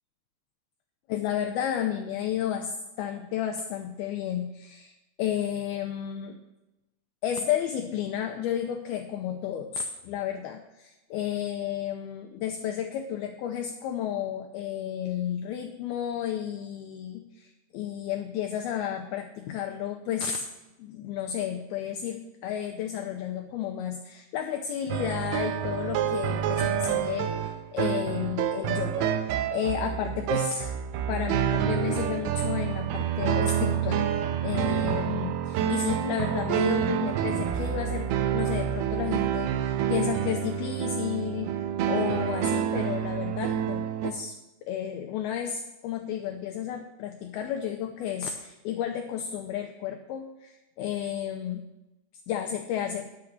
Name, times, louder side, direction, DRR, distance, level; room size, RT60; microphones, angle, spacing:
voice 1, 1.1-6.4 7.2-20.5 20.8-30.7 31.0-34.1 34.4-44.4 44.6-51.7 52.3-53.1, left 9 dB, 90° left, 5 dB, 2.2 m, -32 dB
sound 1, 24.9-44.1, right 9 dB, 85° right, 2.3 m, -28 dB
10.5 x 7.2 x 6.5 m, 0.99 s
omnidirectional pair, 5.2 m